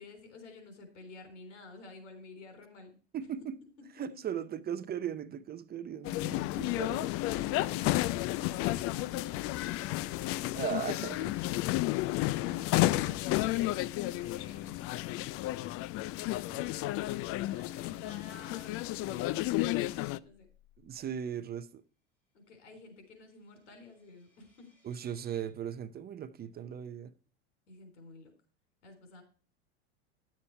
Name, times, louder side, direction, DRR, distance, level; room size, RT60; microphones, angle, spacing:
voice 1, 0.0-3.0 7.3-10.8 11.9-14.8 17.4-20.5 22.3-24.8 27.7-28.3 28.8-29.2, left 4 dB, 85° left, 3.7 m, -51 dB
voice 2, 3.1-3.5 4.0-7.1 10.5-11.4 20.8-21.8 24.8-27.1, right 9 dB, 25° right, 0.6 m, -38 dB
sound 1, 6.0-20.2, left 17 dB, 40° left, 0.4 m, -32 dB
sound 2, 19.5-21.3 22.5-25.4, left 2 dB, 5° left, 6.5 m, -68 dB
11.0 x 7.3 x 4.3 m
supercardioid pair, 105°, 35 cm